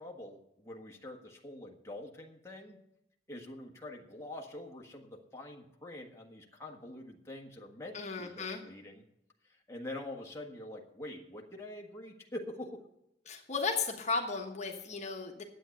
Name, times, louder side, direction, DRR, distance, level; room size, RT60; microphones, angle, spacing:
voice 1, 0.0-2.8 3.3-9.0 9.4-12.8, left 1 dB, 15° left, 0 dB, 1.4 m, -45 dB
voice 2, 7.9-8.6 13.3-15.4, left 4 dB, 40° left, 2 dB, 1.3 m, -35 dB
11.0 x 8.4 x 7.8 m, 0.83 s
head